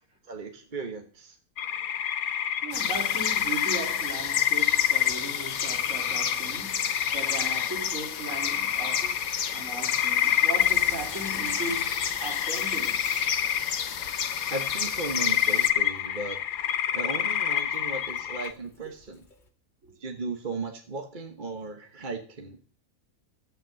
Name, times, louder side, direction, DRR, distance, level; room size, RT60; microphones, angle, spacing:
voice 1, 0.2-1.4 14.5-16.4 16.9-19.3 20.0-22.6, right 3 dB, 35° right, 1.3 m, -36 dB
sound 1, 1.6-18.5, left 10 dB, 85° left, 1.4 m, -28 dB
voice 2, 2.6-9.2 9.5-13.0 19.8-19.9, right 2 dB, 60° right, 4.6 m, -38 dB
sound 2, 2.7-15.7, left 7 dB, 70° left, 1.4 m, -34 dB
Sink (filling or washing) / Drip, 10.6-19.5, left 3 dB, 35° left, 1.8 m, -48 dB
12.5 x 8.1 x 7.7 m
omnidirectional pair, 1.5 m